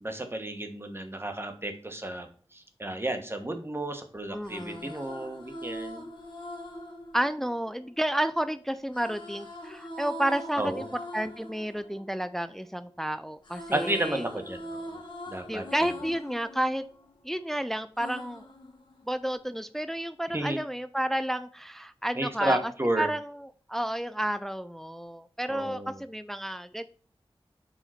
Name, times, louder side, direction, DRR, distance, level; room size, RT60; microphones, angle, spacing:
voice 1, 0.0-6.1 10.6-10.8 13.7-15.0 15.3-15.9 20.3-20.6 22.1-23.1 25.5-26.0, right 1 dB, 25° right, 6 dB, 1.3 m, -32 dB
sound 1, 4.2-8.3 8.9-13.0 13.2-17.5 18.0-19.4, equal, 50° left, 1.7 m, -43 dB
voice 2, 4.3-4.9 7.1-10.9 11.1-14.3 15.5-16.8 17.2-18.5 19.1-22.7 23.0-26.9, right 1 dB, 5° left, 12 dB, 0.4 m, -31 dB
5.1 x 3.8 x 5.7 m, 0.42 s
wide cardioid pair, 50°, 10 cm